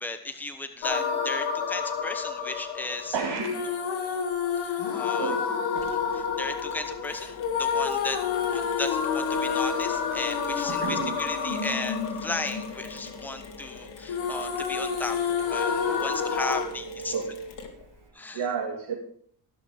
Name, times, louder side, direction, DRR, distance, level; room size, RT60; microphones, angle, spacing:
voice 1, 0.0-3.1 4.6-5.3 5.8-8.2 8.4-15.2 15.5-17.1 18.1-18.4, left 3 dB, 5° left, 7 dB, 1.1 m, -35 dB
sound 1, 0.8-13.8 14.1-16.6, left 6 dB, 85° left, 2.1 m, -29 dB
voice 2, 3.1-3.6 5.2-5.4 5.7-5.8 10.7-11.2 15.6-17.6 18.3-18.9, right 5 dB, 80° right, -3 dB, 2.3 m, -33 dB
Mechanisms, 5.8-18.1, left 4 dB, 65° left, 2.4 m, -45 dB
16.5 x 6.5 x 5.2 m, 0.62 s
cardioid pair, 80°, 46 cm